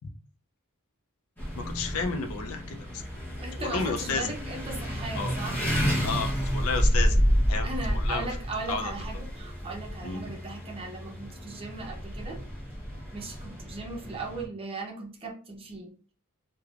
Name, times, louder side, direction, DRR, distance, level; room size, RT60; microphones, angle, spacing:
sound 1, 1.4-14.4, equal, 10° left, 0.9 m, -30 dB
voice 1, 1.6-3.0 3.6-4.3 5.1-5.3 6.0-7.2 7.5-8.3 8.7-8.9 10.0-10.3, left 4 dB, 70° left, 4 dB, 0.4 m, -32 dB
voice 2, 3.4-6.2 7.6-12.4 13.1-16.0, right 3 dB, 25° right, 0 dB, 0.6 m, -38 dB
3.2 x 2.1 x 2.4 m, 0.38 s
head